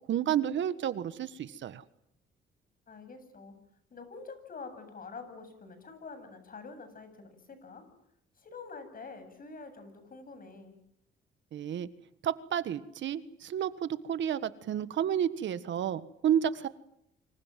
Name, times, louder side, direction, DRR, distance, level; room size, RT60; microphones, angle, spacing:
voice 1, 0.1-1.8 11.5-11.9 12.2-16.7, right 9 dB, 70° right, 14 dB, 1.5 m, -31 dB
voice 2, 2.9-3.6 3.9-7.9 8.4-10.8, left 4 dB, 45° left, 10 dB, 8.0 m, -46 dB
29.5 x 26.0 x 7.6 m, 0.76 s
cardioid pair, 90°, 20 cm